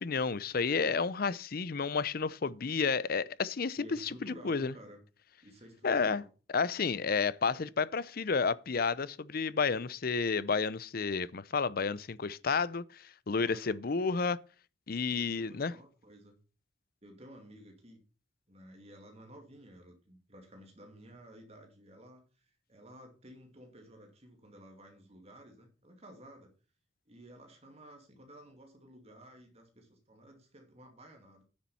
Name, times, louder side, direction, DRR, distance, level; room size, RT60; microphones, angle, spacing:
voice 1, 0.0-4.1 4.4-4.7 5.8-6.2 6.5-12.8 13.3-14.4 14.9-15.7, left 5 dB, 55° left, 0.6 m, -31 dB
voice 2, 3.8-5.0 5.4-6.3 13.4-13.8 15.1-16.4 17.0-18.0 18.5-26.5 27.1-31.4, equal, 35° right, 2.4 m, -54 dB
9.6 x 7.4 x 5.6 m
head